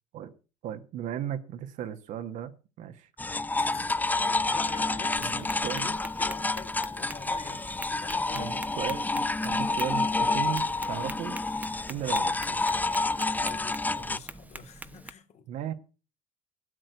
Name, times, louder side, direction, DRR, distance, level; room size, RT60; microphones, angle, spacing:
voice 1, 0.6-2.5 2.8-3.1 5.2-6.0 8.3-11.4 11.9-12.6 15.5-15.7, right 10 dB, 65° right, 1.4 m, -36 dB
sound 1, 3.2-14.2, left 3 dB, 10° left, 0.6 m, -29 dB
voice 2, 3.6-8.7 13.4-15.5, left 6 dB, 55° left, 2.7 m, -46 dB
Tap, 5.1-15.1, right 2 dB, 10° right, 1.0 m, -45 dB
12.5 x 7.8 x 7.8 m
supercardioid pair, 75°, 14 cm